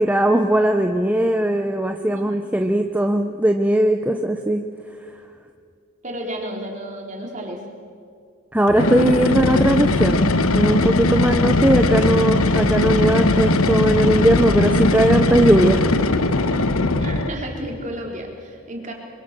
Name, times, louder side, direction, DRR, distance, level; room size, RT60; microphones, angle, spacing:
voice 1, 0.0-4.7 8.5-10.2 10.5-15.9, right 1 dB, 5° right, 4 dB, 0.8 m, -19 dB
voice 2, 6.0-7.6 16.8-18.9, right 1 dB, 35° right, 0 dB, 3.8 m, -32 dB
sound 1, 8.7-17.5, left 2 dB, 80° left, 1.2 m, -19 dB
26.5 x 24.0 x 7.5 m, 2.3 s
head